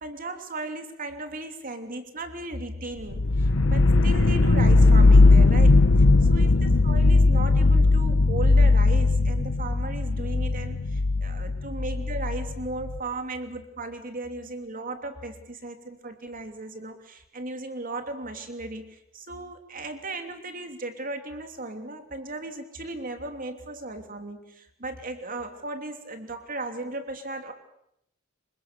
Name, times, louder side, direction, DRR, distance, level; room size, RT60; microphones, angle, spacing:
voice 1, 0.0-5.8 6.3-27.5, right 2 dB, 40° right, 6 dB, 3.1 m, -36 dB
sound 1, 3.1-13.0, left 3 dB, 70° left, 1.0 m, -19 dB
28.0 x 25.0 x 6.9 m, 0.78 s
head